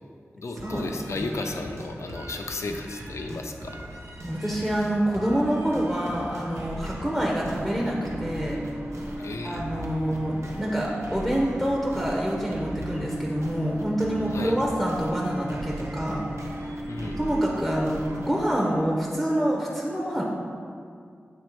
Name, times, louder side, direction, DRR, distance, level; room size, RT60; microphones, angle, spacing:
voice 1, 0.3-3.8 9.2-9.8 14.3-14.6 16.8-17.2, left 3 dB, 85° left, 4 dB, 0.5 m, -34 dB
sound 1, 0.6-18.5, right 1 dB, 85° right, 0.8 m, -39 dB
voice 2, 4.2-8.6 9.4-16.2 17.0-20.2, equal, ahead, -3 dB, 0.8 m, -27 dB
sound 2, 5.3-19.3, equal, 35° right, 0.9 m, -39 dB
7.6 x 3.2 x 4.4 m, 2.2 s
wide cardioid pair, 65°, 5 cm